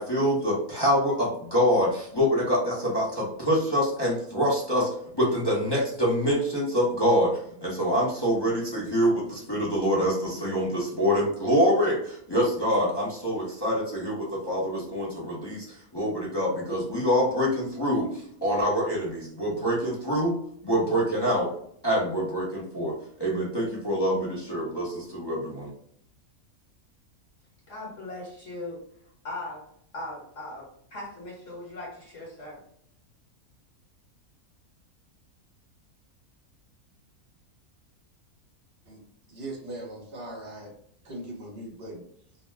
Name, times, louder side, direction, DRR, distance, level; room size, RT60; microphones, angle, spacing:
voice 1, 0.0-4.9 5.1-20.4 20.6-21.5 21.8-25.7, equal, 30° left, -6 dB, 0.5 m, -25 dB
voice 2, 27.7-28.8 29.2-29.7 29.9-32.6, left 2 dB, 55° left, -5 dB, 1.3 m, -39 dB
voice 3, 39.3-40.7 41.0-42.0, right 1 dB, 45° right, -1 dB, 1.0 m, -39 dB
2.6 x 2.1 x 3.3 m, 0.67 s
omnidirectional pair, 1.6 m